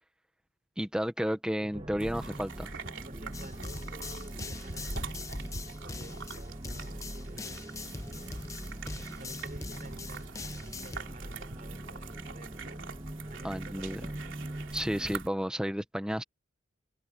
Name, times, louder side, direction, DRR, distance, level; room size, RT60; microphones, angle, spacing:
voice 1, 0.8-2.7 13.4-14.0 14.7-16.2, equal, 5° right, 1.1 m, -32 dB
voice 2, 1.6-2.0 3.0-5.3 5.8-7.7 8.1-8.4 9.1-10.4 10.6-12.8 13.3-14.4, right 1 dB, 45° right, 5.0 m, -52 dB
sound 1, 1.7-15.2, right 1 dB, 25° right, 1.1 m, -43 dB
Dog eats, 2.0-15.3, right 4 dB, 70° right, 3.4 m, -45 dB
sound 2, 3.3-11.0, left 3 dB, 15° left, 0.8 m, -43 dB
head